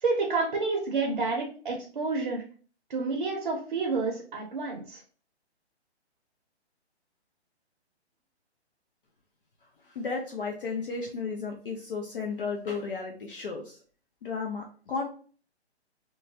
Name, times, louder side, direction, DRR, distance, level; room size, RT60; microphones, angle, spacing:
voice 1, 0.0-2.4 2.9-5.0, right 3 dB, 45° right, 0 dB, 0.7 m, -29 dB
voice 2, 9.8-13.8 14.2-15.1, left 4 dB, 50° left, 2 dB, 0.5 m, -34 dB
3.0 x 2.2 x 2.7 m, 0.41 s
hypercardioid pair, 170°, 34 cm